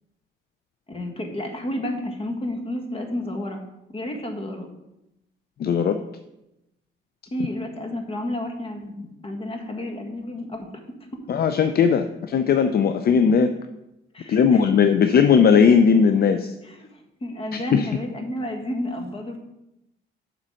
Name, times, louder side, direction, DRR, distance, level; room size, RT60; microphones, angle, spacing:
voice 1, 0.9-3.7 3.9-4.7 7.3-10.7 14.1-14.7 16.6-19.4, left 1 dB, 30° left, 4 dB, 1.4 m, -31 dB
voice 2, 5.6-6.0 11.3-13.5 14.3-16.5 17.5-17.9, left 6 dB, 50° left, 8 dB, 0.5 m, -18 dB
7.5 x 3.9 x 6.3 m, 0.89 s
cardioid pair, 90°, 20 cm